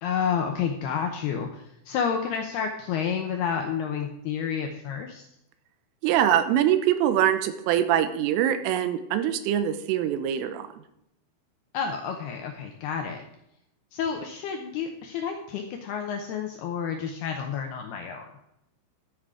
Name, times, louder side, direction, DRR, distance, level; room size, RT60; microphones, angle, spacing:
voice 1, 0.0-5.2 11.7-13.2 13.9-18.3, left 7 dB, 80° left, 3 dB, 2.3 m, -30 dB
voice 2, 6.0-10.7, right 10 dB, 90° right, 10 dB, 3.5 m, -23 dB
13.0 x 7.9 x 4.9 m, 0.82 s
omnidirectional pair, 5.7 m